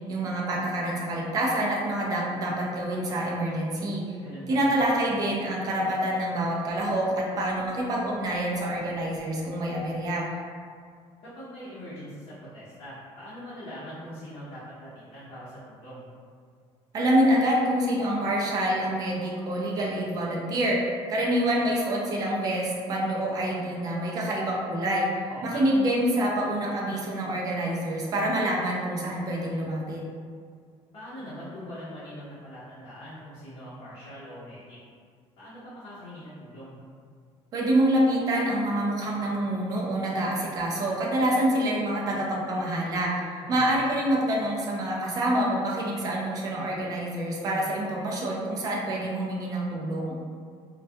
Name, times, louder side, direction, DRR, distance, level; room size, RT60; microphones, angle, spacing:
voice 1, 0.1-4.1 4.5-10.3 16.9-25.1 25.4-30.0 37.5-43.2 43.5-50.2, right 1 dB, 35° right, -3 dB, 0.4 m, -26 dB
voice 2, 4.2-4.7 11.2-16.0 25.3-25.6 30.9-34.8 35.4-36.8 43.4-43.7, equal, 50° left, -11 dB, 0.6 m, -42 dB
2.2 x 2.2 x 2.6 m, 2.1 s
cardioid pair, 175°, 11 cm